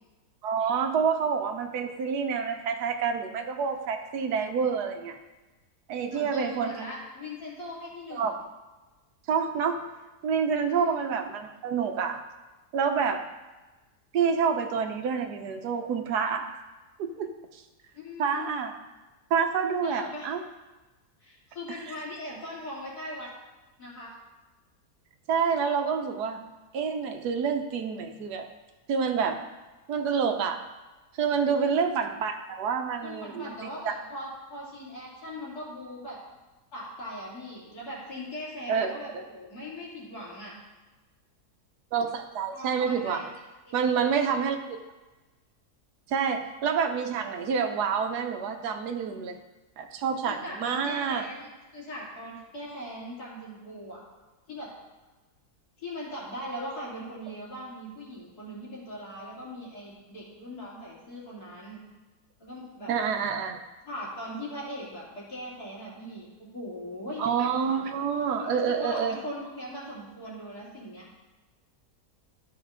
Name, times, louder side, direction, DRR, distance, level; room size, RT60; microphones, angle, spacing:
voice 1, 0.4-5.2 5.9-6.7 8.1-8.3 9.3-9.8 10.2-12.2 12.7-13.2 14.1-16.6 17.0-17.6 18.2-18.7 19.3-20.4 21.7-21.9 25.3-26.5 26.7-28.4 28.9-29.4 29.9-30.6 31.2-33.9 38.7-39.2 41.9-43.2 43.7-44.6 46.1-49.4 49.8-51.3 62.9-63.6 67.2-69.2, right 6 dB, 80° right, 6 dB, 1.3 m, -28 dB
voice 2, 6.1-8.3 10.7-10.9 17.9-18.5 19.8-20.3 21.2-23.3 23.8-24.1 31.6-31.8 33.0-36.2 36.7-40.5 42.5-43.2 43.7-43.8 50.3-54.0 54.5-54.7 55.8-61.8 62.4-62.9 63.8-67.2 68.4-71.0, left 1 dB, 70° left, -6 dB, 3.1 m, -40 dB
12.5 x 5.3 x 3.7 m, 1.2 s
omnidirectional pair, 1.7 m